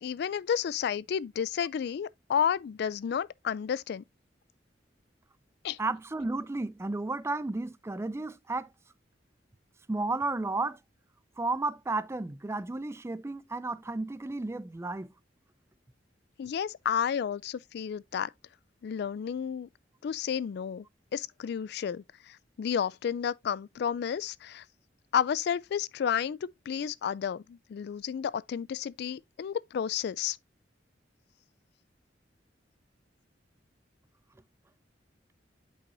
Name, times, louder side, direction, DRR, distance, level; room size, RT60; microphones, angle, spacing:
voice 1, 0.0-4.0 5.6-5.8 16.4-18.3 18.8-19.7 20.0-20.8 21.1-24.6 25.1-26.4 26.7-30.4, left 8 dB, 60° left, 0.3 m, -31 dB
voice 2, 5.8-8.7 9.9-10.8 11.4-15.1, right 3 dB, 15° right, 0.4 m, -33 dB
8.4 x 5.5 x 2.5 m
head